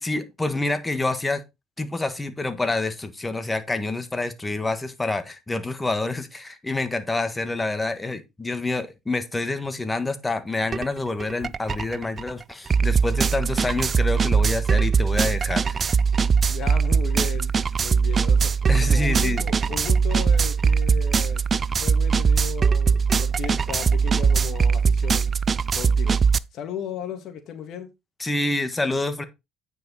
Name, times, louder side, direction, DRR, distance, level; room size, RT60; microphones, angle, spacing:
voice 1, 0.0-1.4 1.8-16.0 18.7-19.4 28.2-29.2, left 2 dB, 15° left, 1.6 m, -27 dB
sound 1, 10.7-10.9 11.2-26.4, right 6 dB, 35° right, 0.4 m, -21 dB
voice 2, 16.2-18.5 18.8-21.4 21.8-25.3 25.7-26.2 26.5-27.9, left 8 dB, 60° left, 2.1 m, -36 dB
9.2 x 5.3 x 4.0 m
supercardioid pair, 90°, 0 cm